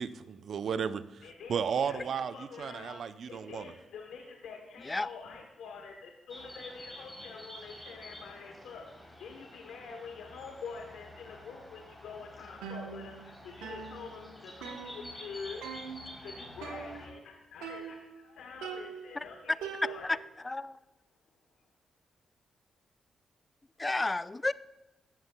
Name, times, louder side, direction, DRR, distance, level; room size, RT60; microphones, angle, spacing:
voice 1, 0.0-3.7, right 7 dB, 65° right, 14 dB, 0.4 m, -34 dB
voice 2, 1.2-20.2, left 5 dB, 75° left, 2 dB, 0.9 m, -46 dB
sound 1, 6.3-17.1, left 1 dB, 5° left, 3.4 m, -49 dB
sound 2, 12.6-13.3 13.6-15.3 15.6-16.2 16.6-17.3 17.6-18.2 18.6-20.3, right 6 dB, 85° right, 1.0 m, -43 dB
voice 3, 20.4-20.8 23.8-24.5, left 2 dB, 25° left, 17 dB, 0.4 m, -31 dB
14.5 x 8.1 x 2.2 m, 0.97 s
hypercardioid pair, 40°, 0 cm